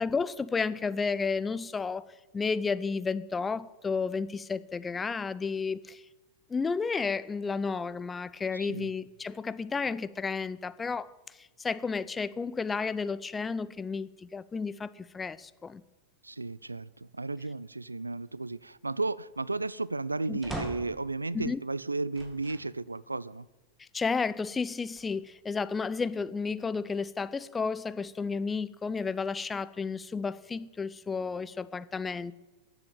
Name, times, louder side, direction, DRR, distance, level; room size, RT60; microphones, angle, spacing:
voice 1, 0.0-2.0 2.3-6.0 6.5-11.1 11.4-15.8 20.3-20.4 21.3-21.6 23.8-32.3, left 5 dB, 15° left, 0.5 m, -32 dB
voice 2, 8.5-8.9 16.2-23.5, right 3 dB, 85° right, 0.3 m, -34 dB
sound 1, 20.4-21.1 22.1-22.7 23.3-23.4 24.7-25.4, right 1 dB, 10° right, 2.6 m, -40 dB
14.0 x 7.9 x 8.8 m
figure-of-eight pair, 90°, 0 cm